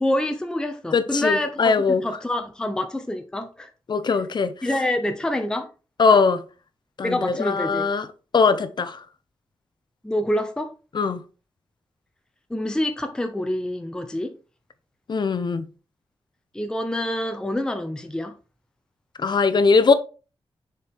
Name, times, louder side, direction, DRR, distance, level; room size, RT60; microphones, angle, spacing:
voice 1, 0.0-1.7 2.0-3.7 4.6-5.7 6.1-6.2 7.0-7.9 10.0-10.7 12.5-14.3 16.5-18.3, left 1 dB, 10° left, 0.5 m, -26 dB
voice 2, 0.9-2.0 3.9-4.5 6.0-6.4 7.0-8.1 8.3-9.0 10.9-11.2 15.1-15.6 19.2-19.9, left 4 dB, 50° left, 0.6 m, -20 dB
6.7 x 4.4 x 3.4 m
wide cardioid pair, 150°, 10 cm